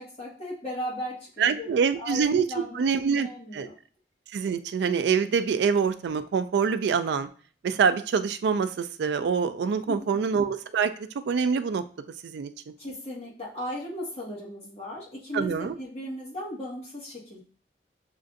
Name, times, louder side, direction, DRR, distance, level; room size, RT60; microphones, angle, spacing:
voice 1, 0.0-1.7 2.0-3.7 9.9-10.4 12.8-17.4, left 1 dB, 35° left, -5 dB, 1.4 m, -37 dB
voice 2, 1.4-2.5 2.7-3.3 3.5-3.7 4.3-7.3 7.6-11.8 12.2-12.5 15.3-15.8, right 6 dB, 70° right, 11 dB, 0.3 m, -25 dB
6.4 x 2.5 x 2.5 m, 0.41 s
head